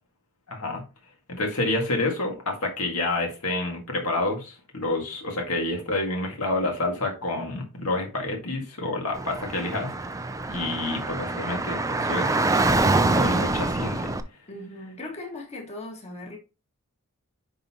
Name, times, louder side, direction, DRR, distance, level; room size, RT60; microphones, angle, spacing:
voice 1, 0.5-0.8 1.3-9.9 10.5-12.4 13.1-14.1, left 2 dB, 75° left, 2.0 m, -28 dB
Car / Traffic noise roadway noise, 9.1-14.2, right 2 dB, 15° right, 0.5 m, -25 dB
voice 2, 14.5-16.4, left 2 dB, 30° left, 1.8 m, -38 dB
10.0 x 4.1 x 2.9 m
head